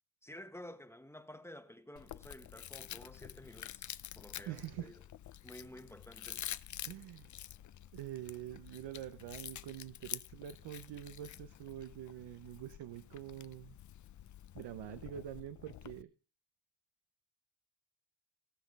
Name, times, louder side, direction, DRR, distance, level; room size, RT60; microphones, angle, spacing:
voice 1, 0.2-5.0 5.4-6.4, left 1 dB, 5° left, 1.1 m, -52 dB
Chewing mastication, 2.0-16.0, left 11 dB, 45° left, 0.5 m, -48 dB
voice 2, 4.5-4.9 6.8-7.3 7.9-13.8 14.5-16.1, right 12 dB, 90° right, 0.8 m, -45 dB
17.5 x 6.1 x 5.2 m
cardioid pair, 85°, 41 cm